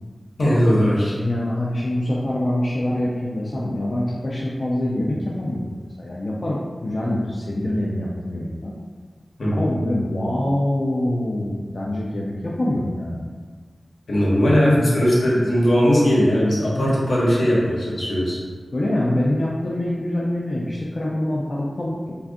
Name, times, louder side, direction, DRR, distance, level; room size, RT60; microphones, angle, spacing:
voice 1, 0.4-1.1 9.4-9.6 14.1-18.4, equal, 80° left, -6 dB, 0.9 m, -18 dB
voice 2, 1.1-8.7 9.5-13.2 18.7-22.1, left 1 dB, 50° left, -5 dB, 0.4 m, -25 dB
2.5 x 2.3 x 3.5 m, 1.5 s
wide cardioid pair, 65°, 0 cm